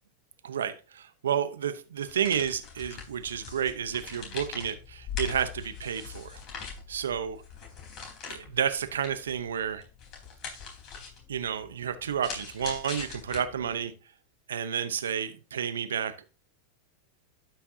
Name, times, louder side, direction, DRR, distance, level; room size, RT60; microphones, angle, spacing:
voice 1, 0.4-6.4 6.9-7.4 8.3-9.8 11.3-13.9 14.5-16.1, right 8 dB, 85° right, 11 dB, 0.8 m, -31 dB
sound 1, 2.0-13.8, left 6 dB, 45° left, 4.0 m, -42 dB
12.5 x 5.8 x 2.8 m, 0.35 s
hypercardioid pair, 100°, 0 cm